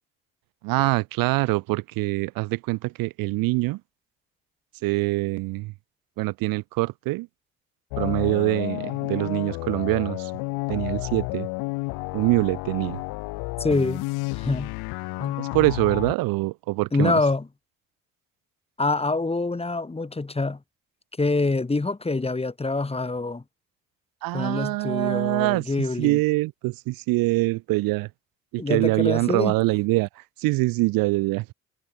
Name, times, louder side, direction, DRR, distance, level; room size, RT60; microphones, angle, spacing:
voice 1, 0.6-3.8 4.8-5.7 6.2-7.3 8.0-10.3 10.7-11.5 12.1-13.0 15.4-17.1 24.2-28.1 28.5-31.5, right 21 dB, 65° right, 0.6 m, -24 dB
sound 1, 7.9-16.1, left 26 dB, 75° left, 1.4 m, -31 dB
voice 2, 13.6-14.0 14.3-14.7 15.2-15.4 16.9-17.4 18.8-20.6 21.2-23.4 24.3-26.2 28.6-29.5, left 3 dB, 15° left, 1.4 m, -25 dB
hypercardioid pair, 50°, 38 cm